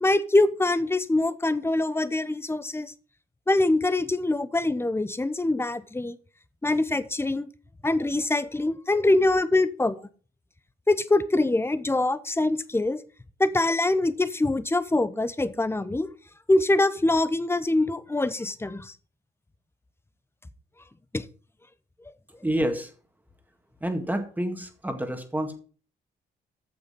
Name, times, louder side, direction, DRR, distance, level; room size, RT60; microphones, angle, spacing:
voice 1, 0.0-2.9 3.5-6.2 6.6-7.5 7.8-10.0 10.9-13.0 13.4-16.1 16.5-18.9 21.1-21.2, left 2 dB, 10° left, 15 dB, 0.8 m, -24 dB
voice 2, 22.4-22.9 23.8-25.6, right 1 dB, 10° right, 6 dB, 1.9 m, -28 dB
8.6 x 7.0 x 5.6 m, 0.39 s
cardioid pair, 90°, 20 cm